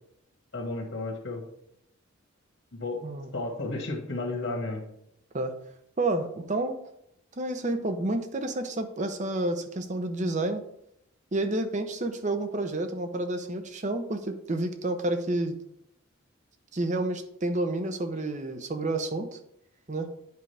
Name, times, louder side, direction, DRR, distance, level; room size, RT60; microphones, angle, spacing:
voice 1, 0.5-1.4 2.7-3.0 3.3-4.8, left 2 dB, 70° left, 1 dB, 1.6 m, -32 dB
voice 2, 3.0-3.4 5.3-5.5 6.0-6.8 7.4-10.6 11.3-15.6 16.7-19.3 19.9-20.1, right 2 dB, 40° right, 8 dB, 0.8 m, -30 dB
9.5 x 5.0 x 3.4 m, 0.76 s
head